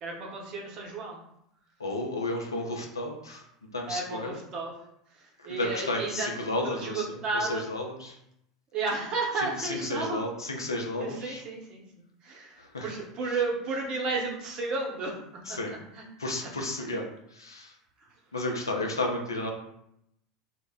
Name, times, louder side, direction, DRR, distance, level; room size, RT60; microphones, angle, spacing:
voice 1, 0.0-1.2 3.8-4.7 5.1-6.3 6.6-7.7 8.7-10.2 11.0-11.8 12.2-15.2 15.5-16.0 16.4-16.5 16.8-16.9, right 3 dB, 40° right, -1 dB, 0.7 m, -33 dB
voice 2, 1.8-3.4 3.7-4.3 5.5-7.1 7.4-8.2 9.6-11.4 12.6-12.9 13.3-13.4 15.5-15.7 16.2-17.7 18.3-19.5, left 2 dB, 85° left, 1 dB, 0.4 m, -32 dB
2.1 x 2.0 x 3.4 m, 0.77 s
figure-of-eight pair, 80°, 2 cm